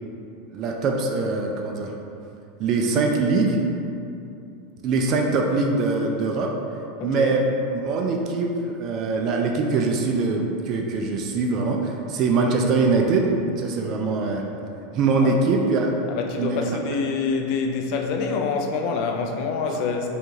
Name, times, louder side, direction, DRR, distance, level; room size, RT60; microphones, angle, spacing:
voice 1, 0.5-1.9 2.6-3.6 4.8-6.5 7.0-7.5 7.8-14.4 14.9-15.9 16.4-16.6, right 3 dB, 40° right, 1 dB, 0.3 m, -23 dB
voice 2, 7.0-7.3 15.2-15.3 16.1-20.1, left 5 dB, 50° left, 3 dB, 0.4 m, -26 dB
4.5 x 2.3 x 2.6 m, 2.7 s
supercardioid pair, 140°, 0 cm